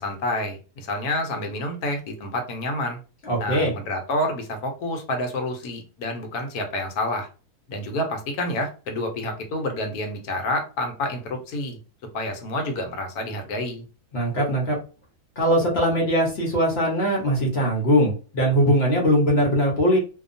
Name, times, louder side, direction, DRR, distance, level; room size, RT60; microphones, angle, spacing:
voice 1, 0.0-3.0 3.4-7.3 7.7-11.8 12.1-13.8, left 1 dB, 70° left, 4 dB, 1.2 m, -28 dB
voice 2, 3.2-3.7 14.1-14.8 15.4-20.0, equal, 50° left, -2 dB, 0.9 m, -21 dB
2.8 x 2.2 x 2.5 m, 0.34 s
omnidirectional pair, 1.7 m